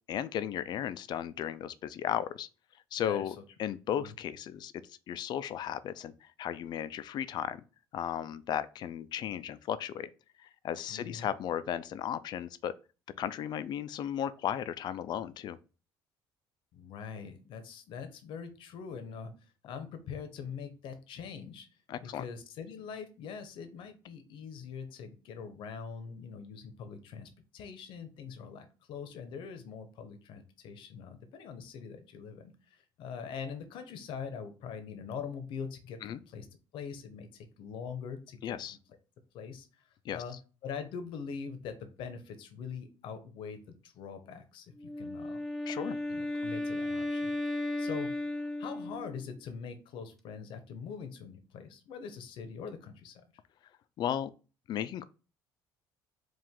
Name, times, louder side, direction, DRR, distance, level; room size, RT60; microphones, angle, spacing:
voice 1, 0.1-2.5 2.9-7.6 7.9-10.1 10.4-12.7 13.2-15.6 21.9-22.2 36.0-36.2 38.4-38.8 40.0-40.2 45.7-46.0 54.0-54.3 54.7-55.0, left 10 dB, 55° left, 0.4 m, -35 dB
voice 2, 3.0-3.3 3.9-4.1 10.9-11.3 16.7-19.3 19.6-21.7 22.0-36.5 36.7-38.6 39.3-39.7 40.1-40.4 40.6-45.4 46.1-48.1 48.6-53.2, left 6 dB, 75° left, 0.8 m, -43 dB
Wind instrument woodwind instrument, 44.8-49.3, left 1 dB, 5° left, 0.7 m, -35 dB
4.7 x 2.4 x 3.6 m
cardioid pair, 115°, 9 cm